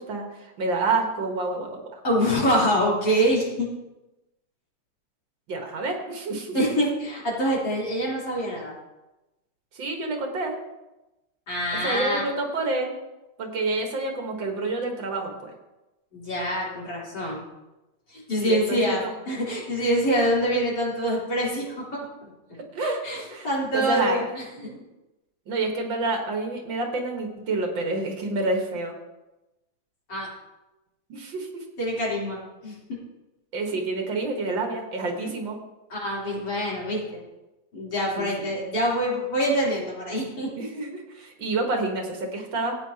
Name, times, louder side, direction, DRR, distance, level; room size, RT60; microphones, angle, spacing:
voice 1, 0.0-2.0 5.5-6.6 9.7-10.6 11.8-12.9 13.4-15.5 18.4-19.1 22.5-23.0 23.3-23.5 23.7-24.7 25.5-28.9 31.1-31.6 33.5-35.6 38.2-38.5 40.6-42.8, right 3 dB, 80° right, 2 dB, 2.2 m, -28 dB
voice 2, 2.0-3.7 6.5-8.7 11.5-12.2 16.1-17.4 18.1-22.3 23.0-24.2 30.1-30.3 31.8-32.7 35.9-37.0 37.7-40.5, equal, 60° left, -6 dB, 4.3 m, -25 dB
16.0 x 8.7 x 2.9 m, 1.0 s
omnidirectional pair, 2.0 m